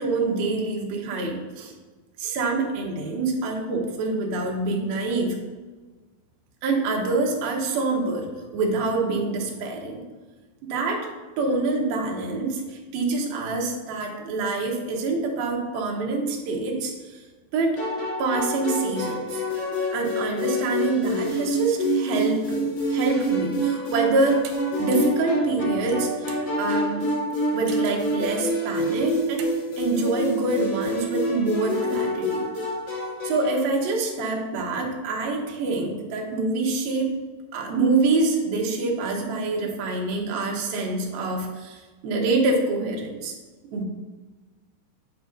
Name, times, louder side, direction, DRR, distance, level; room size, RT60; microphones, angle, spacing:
voice 1, 0.0-1.7 2.2-5.4 6.6-8.3 8.5-10.0 10.7-11.1 11.4-17.2 17.5-17.8 18.2-19.4 19.9-24.4 24.8-27.1 27.5-32.5 33.2-37.1 37.5-43.4 43.7-43.8, right 3 dB, 75° right, 0 dB, 2.9 m, -26 dB
sound 1, 17.8-33.7, equal, 50° left, 3.6 m, -27 dB
sound 2, 24.4-24.6 24.9-25.2 25.7-26.5 27.7-28.1 28.9-29.6, right 7 dB, 90° right, 2.9 m, -42 dB
8.5 x 7.6 x 2.6 m, 1.3 s
omnidirectional pair, 4.6 m